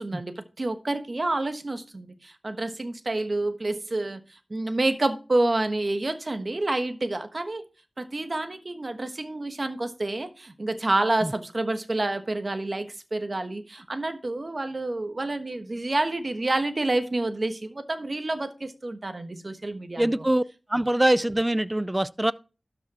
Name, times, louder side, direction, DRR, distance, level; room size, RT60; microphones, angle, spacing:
voice 1, 0.0-4.2 4.5-7.6 8.0-20.3 20.8-20.9, right 2 dB, 50° right, 1.2 m, -28 dB
voice 2, 20.0-20.4 20.7-22.3, right 1 dB, 20° right, 0.5 m, -23 dB
12.5 x 5.0 x 4.2 m
cardioid pair, 45°, 0 cm